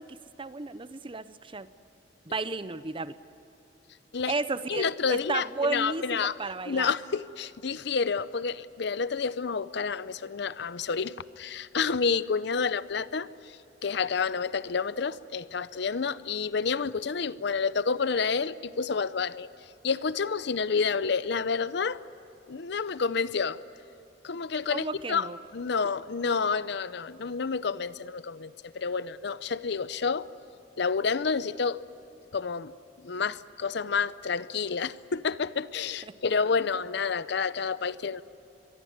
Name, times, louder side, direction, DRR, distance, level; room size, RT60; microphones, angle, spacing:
voice 1, 0.0-1.7 2.3-3.2 4.3-6.9 24.7-25.4, right 3 dB, 30° right, 14 dB, 0.7 m, -33 dB
voice 2, 4.7-6.4 6.7-13.3 13.8-19.5 19.8-22.0 22.5-23.6 24.2-30.3 30.8-31.8 32.3-32.7 33.0-38.2, left 5 dB, 65° left, 16 dB, 0.6 m, -29 dB
24.0 x 23.0 x 9.5 m, 2.9 s
head